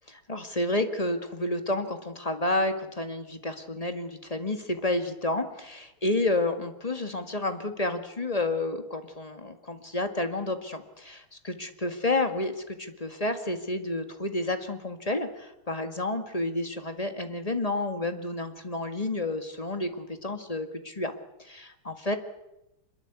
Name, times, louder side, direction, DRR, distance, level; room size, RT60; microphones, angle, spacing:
voice 1, 0.1-21.1 21.4-22.2, left 2 dB, 20° left, 7 dB, 1.8 m, -30 dB
25.0 x 22.0 x 8.3 m, 0.87 s
omnidirectional pair, 2.4 m